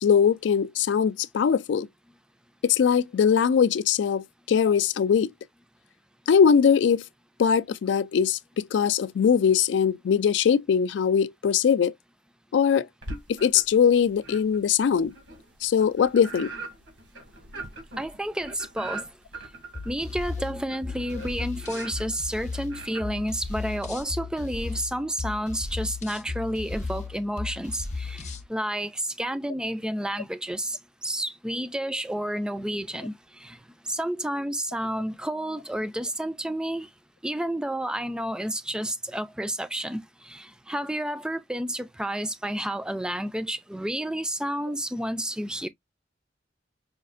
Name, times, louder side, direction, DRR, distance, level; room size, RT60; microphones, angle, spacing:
voice 1, 0.0-1.9 2.6-5.3 6.3-7.0 7.4-11.9 12.5-12.9 13.3-15.1 15.6-16.5, left 7 dB, 80° left, 0.3 m, -21 dB
sound 1, 13.0-13.8 14.2-24.0, right 2 dB, 85° right, 1.9 m, -42 dB
voice 2, 18.0-19.1 19.9-33.1 33.4-33.6 33.9-36.9 37.2-45.7, right 1 dB, 5° right, 0.3 m, -30 dB
sound 2, 19.7-28.5, left 4 dB, 40° left, 0.6 m, -35 dB
5.1 x 2.4 x 2.4 m
head